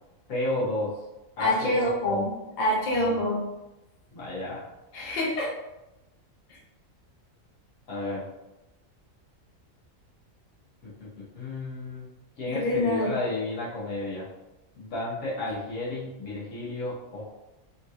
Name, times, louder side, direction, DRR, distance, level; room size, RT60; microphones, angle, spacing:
voice 1, 0.3-0.9 1.4-2.2 2.9-3.2 4.1-4.6 7.9-8.2 10.8-12.1 12.4-14.2 14.7-17.2, left 2 dB, 80° left, -8 dB, 1.6 m, -32 dB
voice 2, 1.4-2.3 2.6-3.5 4.9-5.5 12.5-13.1, left 1 dB, 40° left, -4 dB, 0.8 m, -26 dB
3.7 x 2.8 x 2.4 m, 0.97 s
omnidirectional pair, 1.4 m